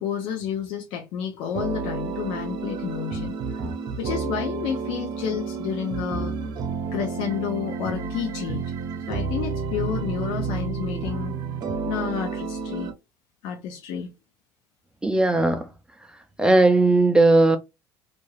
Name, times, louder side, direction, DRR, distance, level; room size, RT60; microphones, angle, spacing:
voice 1, 0.0-3.6 4.0-6.4 6.9-8.7 9.1-11.4 11.9-12.9 13.4-14.1, left 8 dB, 70° left, 0.7 m, -30 dB
sound 1, 1.5-12.9, right 5 dB, 50° right, 0.7 m, -30 dB
voice 2, 15.0-15.7 16.4-17.6, right 2 dB, 10° right, 0.4 m, -17 dB
2.5 x 2.3 x 3.1 m
cardioid pair, 125°, 9 cm